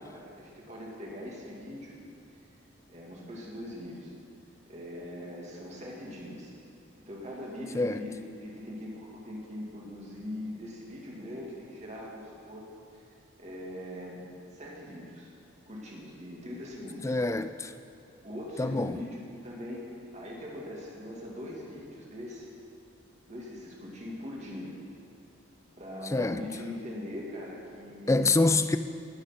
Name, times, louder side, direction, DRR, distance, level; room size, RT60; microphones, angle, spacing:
voice 1, 0.0-2.0 2.3-2.4 2.9-4.1 4.7-6.5 7.1-8.2 8.4-12.6 12.9-13.0 13.4-15.3 15.7-17.2 18.2-22.5 23.3-24.7 25.8-28.4, left 1 dB, 35° right, -3 dB, 2.3 m, -41 dB
voice 2, 17.0-17.7 18.6-19.0 26.1-26.4 28.1-28.8, left 2 dB, 15° left, 10 dB, 0.3 m, -25 dB
19.0 x 6.6 x 5.9 m, 2.8 s
head